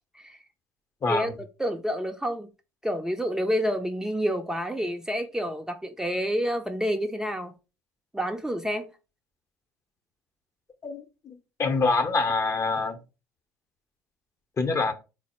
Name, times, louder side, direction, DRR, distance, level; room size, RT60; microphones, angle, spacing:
voice 1, 1.0-1.4 10.8-13.0 14.6-14.9, left 3 dB, 35° left, 0.8 m, -26 dB
voice 2, 1.6-2.5 2.8-7.5 8.1-8.9, equal, 5° right, 0.5 m, -28 dB
4.0 x 2.0 x 4.3 m
hypercardioid pair, 65°, 8 cm